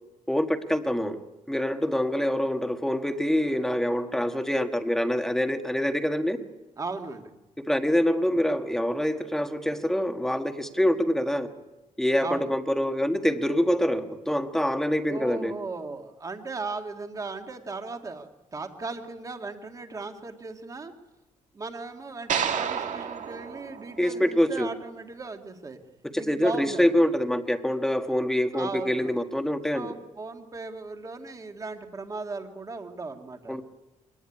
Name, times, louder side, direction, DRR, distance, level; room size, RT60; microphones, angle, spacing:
voice 1, 0.3-1.2 1.5-6.4 7.6-11.5 12.0-15.5 24.0-24.7 26.0-29.9 33.5-33.6, equal, 5° left, 6 dB, 1.5 m, -25 dB
voice 2, 6.8-7.3 12.2-12.5 15.1-20.9 21.5-25.8 26.1-26.9 28.5-29.1 29.7-33.6, right 3 dB, 25° right, 5 dB, 2.0 m, -37 dB
sound 1, 22.3-24.6, right 7 dB, 65° right, 2.1 m, -31 dB
24.5 x 19.0 x 9.9 m, 1.0 s
wide cardioid pair, 170°, 13 cm